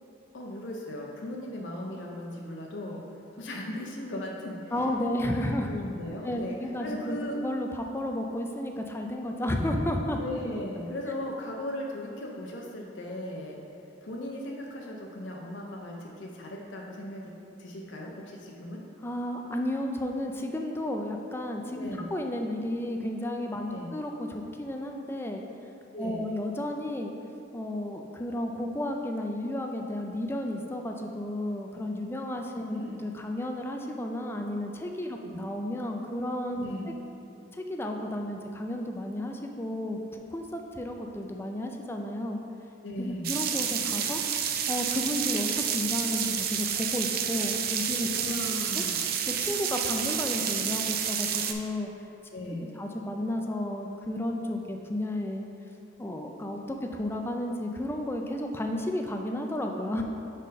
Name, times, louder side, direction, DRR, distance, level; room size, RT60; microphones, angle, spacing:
voice 1, 0.3-3.0 3.4-4.7 5.7-6.6 6.8-7.4 10.2-13.6 14.0-17.3 17.6-18.8 21.7-22.1 23.7-23.9 25.9-26.3 32.7-33.0 35.1-35.4 36.6-36.9 42.8-43.4 48.1-49.0 52.3-52.8, left 1 dB, 70° left, -1 dB, 0.6 m, -37 dB
voice 2, 4.7-5.7 6.2-10.2 19.0-25.4 26.0-27.1 27.5-36.9 37.5-42.4 43.0-44.2 44.7-48.1 48.5-48.8 49.2-51.9 52.8-55.5 56.0-60.0, left 1 dB, 10° left, 2 dB, 0.4 m, -32 dB
sound 1, 43.2-51.5, right 8 dB, 50° right, 0.4 m, -29 dB
4.9 x 4.4 x 5.2 m, 2.7 s
head